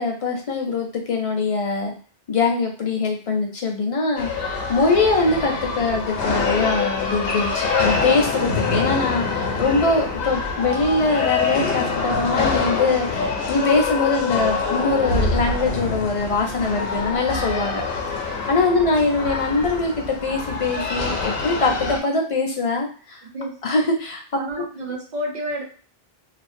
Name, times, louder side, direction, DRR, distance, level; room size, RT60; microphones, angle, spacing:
voice 1, 0.0-1.9 2.3-17.8 18.2-23.2 23.6-24.2, left 3 dB, 45° left, 1 dB, 0.5 m, -22 dB
sound 1, 4.2-22.0, left 4 dB, 70° left, 0.8 m, -25 dB
voice 2, 23.2-23.6 24.3-25.7, equal, 50° right, 1 dB, 0.6 m, -30 dB
2.5 x 2.0 x 2.5 m, 0.41 s
omnidirectional pair, 1.0 m